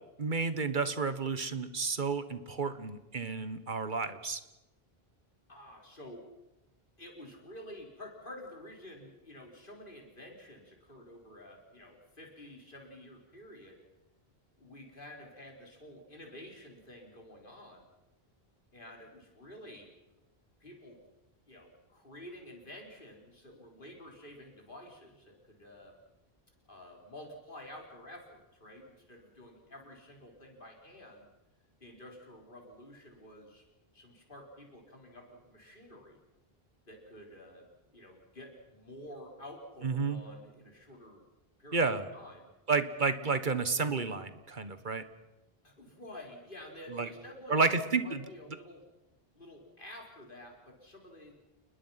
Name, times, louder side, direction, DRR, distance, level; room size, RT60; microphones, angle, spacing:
voice 1, 0.2-4.4 39.8-40.2 41.7-42.0 42.7-45.0 46.9-47.1 47.5-48.2, right 4 dB, 50° right, 11 dB, 1.5 m, -31 dB
voice 2, 5.5-6.3 7.0-13.8 14.6-17.9 18.7-19.9 20.6-21.1 21.5-25.9 26.7-31.3 31.8-33.6 33.9-36.2 36.9-41.2 41.6-41.9 42.1-42.5 45.6-48.8 49.3-51.4, left 1 dB, 55° left, 1 dB, 4.6 m, -50 dB
29.5 x 20.5 x 5.8 m, 1.0 s
omnidirectional pair, 1.0 m